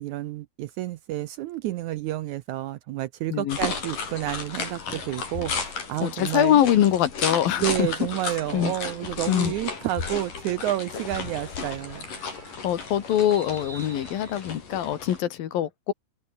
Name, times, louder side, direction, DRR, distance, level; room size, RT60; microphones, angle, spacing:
voice 1, 0.0-6.6 7.6-12.1, right 15 dB, 80° right, 1.8 m, -30 dB
sound 1, 3.5-15.2, left 5 dB, 65° left, 6.6 m, -34 dB
voice 2, 6.0-7.9 8.5-8.7 9.3-9.5 12.6-15.9, left 11 dB, 85° left, 3.5 m, -23 dB
sound 2, 8.5-14.5, right 3 dB, 55° right, 9.0 m, -49 dB
open air
omnidirectional pair, 4.0 m